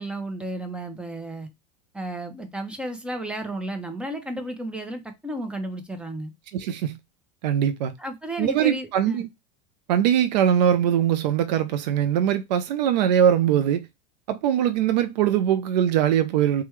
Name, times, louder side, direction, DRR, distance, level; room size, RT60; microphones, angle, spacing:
voice 1, 0.0-1.5 1.9-6.3 8.0-9.2, right 1 dB, 5° right, 0.7 m, -33 dB
voice 2, 6.5-7.0 7.4-7.9 8.4-9.3 9.9-13.9 14.3-16.6, right 10 dB, 90° right, 0.4 m, -21 dB
3.3 x 2.2 x 3.0 m
supercardioid pair, 125°, 21 cm